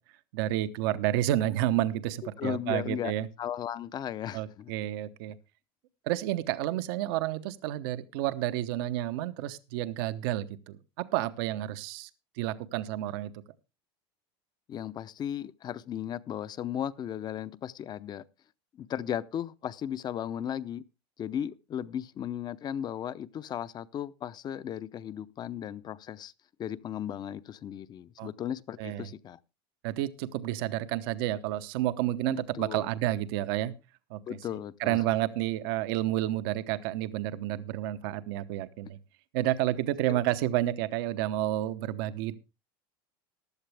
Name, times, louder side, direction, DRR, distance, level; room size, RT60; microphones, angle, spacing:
voice 1, 0.3-3.3 4.3-5.4 6.1-12.1 12.4-13.3 28.2-28.3 28.8-29.1 29.8-33.7 34.1-34.2 34.8-39.0 39.3-42.3, right 14 dB, 70° right, 1.0 m, -30 dB
voice 2, 2.4-3.1 3.4-4.7 14.7-18.2 18.8-20.8 21.2-26.3 26.6-29.4 32.5-32.9 34.3-35.0 40.1-40.2, left 10 dB, 35° left, 0.7 m, -36 dB
15.0 x 11.0 x 3.4 m
supercardioid pair, 120°, 12 cm